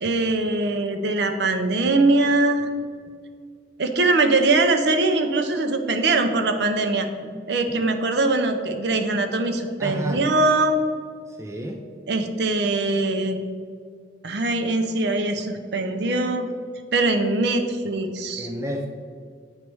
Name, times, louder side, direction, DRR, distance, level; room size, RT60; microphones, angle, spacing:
voice 1, 0.0-2.7 3.8-7.1 7.5-10.8 12.1-13.4 14.2-16.5 16.9-18.5, right 2 dB, 60° right, 6 dB, 0.6 m, -22 dB
voice 2, 9.8-10.2 11.3-11.8 18.4-18.9, right 1 dB, 15° right, 3 dB, 0.3 m, -31 dB
8.4 x 3.1 x 4.6 m, 2.1 s
head